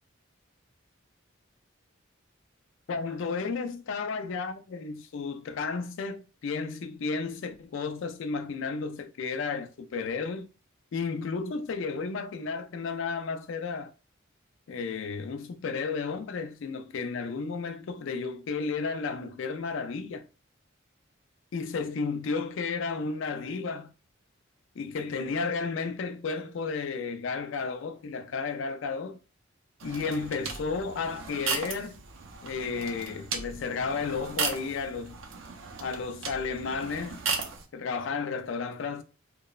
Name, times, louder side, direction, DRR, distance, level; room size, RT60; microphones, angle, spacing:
voice 1, 2.9-10.5 10.9-13.9 14.7-20.2 21.5-23.9 24.8-29.2 29.8-32.0 32.4-35.2 35.8-37.2 37.7-39.0, left 4 dB, 65° left, 0.3 m, -33 dB
sound 1, 29.8-37.6, right 5 dB, 70° right, 0.4 m, -36 dB
2.9 x 2.0 x 2.3 m
head